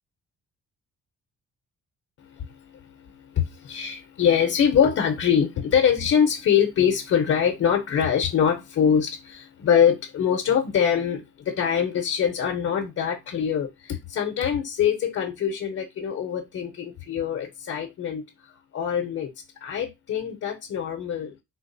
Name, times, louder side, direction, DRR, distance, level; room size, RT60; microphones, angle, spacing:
voice 1, 2.2-19.3 19.6-21.4, left 8 dB, 55° left, 0.7 m, -24 dB
3.8 x 2.3 x 2.6 m
cardioid pair, 90°, 30 cm